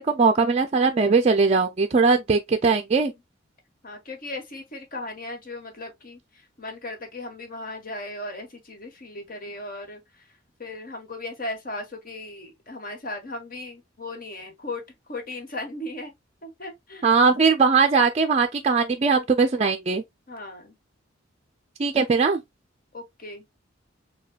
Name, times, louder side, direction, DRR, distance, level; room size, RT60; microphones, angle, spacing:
voice 1, 0.0-3.1 17.0-20.0 21.8-22.4, right 4 dB, 35° right, 0.4 m, -20 dB
voice 2, 3.8-10.2 10.6-14.8 15.1-16.1 16.4-17.4 20.3-20.8 22.9-23.4, left 2 dB, 45° left, 1.3 m, -37 dB
6.4 x 2.3 x 2.2 m
head